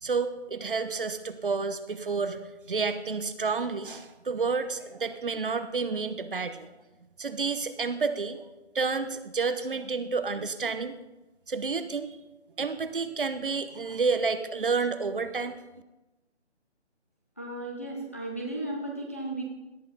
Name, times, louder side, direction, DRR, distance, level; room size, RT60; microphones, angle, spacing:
voice 1, 0.0-6.7 7.2-8.4 8.7-10.9 11.5-12.2 12.6-15.6, right 4 dB, 50° right, 11 dB, 0.9 m, -30 dB
voice 2, 17.4-19.4, right 1 dB, 15° left, -2 dB, 0.7 m, -35 dB
17.5 x 11.0 x 4.0 m, 1.1 s
hypercardioid pair, 170°, 35 cm